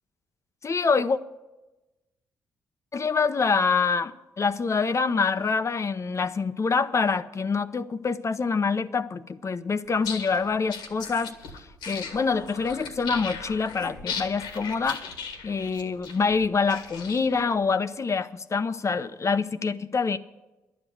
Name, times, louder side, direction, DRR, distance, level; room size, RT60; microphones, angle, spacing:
voice 1, 0.6-1.2 2.9-11.3 11.9-15.1 15.4-20.2, left 5 dB, 40° left, 0.7 m, -26 dB
sound 1, 9.9-17.5, left 5 dB, 75° left, 1.6 m, -38 dB
11.5 x 8.1 x 9.2 m
hypercardioid pair, 45°, 8 cm